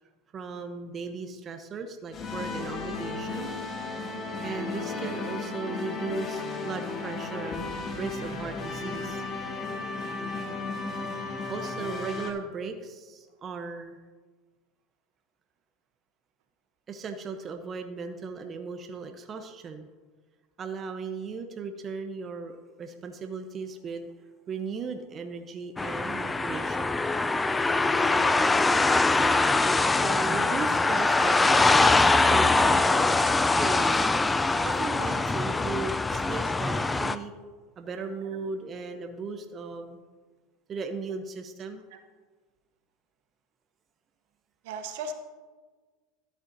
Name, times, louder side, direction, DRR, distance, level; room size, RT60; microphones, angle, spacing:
voice 1, 0.3-3.5 4.4-7.7 8.0-9.2 11.0-11.1 11.5-14.0 16.9-19.9 20.6-24.1 24.5-27.0 29.3-29.4 30.0-33.1 33.5-34.1 34.6-37.3 37.8-40.0 40.7-41.8, right 4 dB, 35° right, 6 dB, 0.8 m, -37 dB
sound 1, 2.1-12.3, left 3 dB, 35° left, 1.9 m, -34 dB
sound 2, 25.8-37.2, left 3 dB, 15° left, 0.4 m, -23 dB
voice 2, 27.8-28.2 29.0-29.1 31.2-31.4 35.0-35.1 41.9-42.0 44.6-45.1, right 4 dB, 70° right, 6 dB, 1.1 m, -39 dB
13.0 x 8.7 x 2.7 m, 1.4 s
hypercardioid pair, 90°, 0 cm